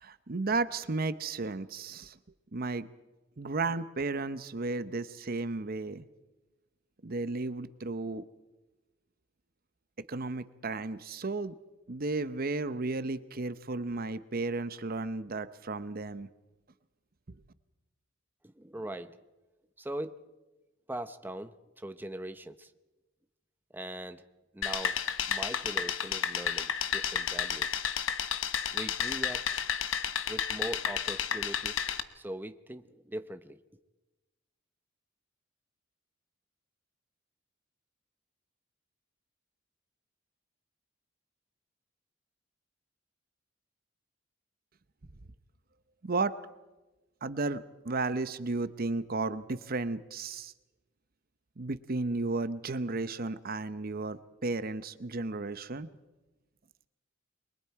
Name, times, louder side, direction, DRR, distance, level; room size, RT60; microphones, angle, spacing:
voice 1, 0.0-2.2 2.5-2.9 3.4-6.1 7.0-8.2 10.1-11.6 11.9-16.3 46.0-46.4 47.2-50.5 51.6-55.9, right 3 dB, 50° right, 13 dB, 0.8 m, -33 dB
voice 2, 18.4-19.2 19.8-20.2 20.9-22.7 23.7-24.2 24.5-25.0 25.3-27.8 28.7-29.5 30.3-31.8 32.1-33.6, right 1 dB, 10° right, 10 dB, 0.8 m, -40 dB
sound 1, 24.6-32.0, left 8 dB, 85° left, 1.1 m, -32 dB
29.5 x 23.0 x 4.7 m, 1.1 s
head